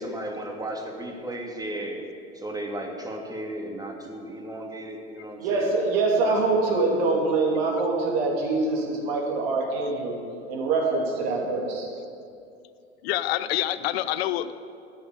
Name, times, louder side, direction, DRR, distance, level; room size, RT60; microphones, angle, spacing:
voice 1, 0.0-2.0 2.3-5.7 6.2-7.7, right 1 dB, 10° right, 1 dB, 2.3 m, -35 dB
voice 2, 5.4-10.2 10.5-11.9, right 3 dB, 70° right, 0 dB, 2.9 m, -24 dB
voice 3, 13.0-14.5, left 13 dB, 70° left, 14 dB, 0.6 m, -26 dB
12.0 x 6.8 x 9.1 m, 2.4 s
hypercardioid pair, 80°, 32 cm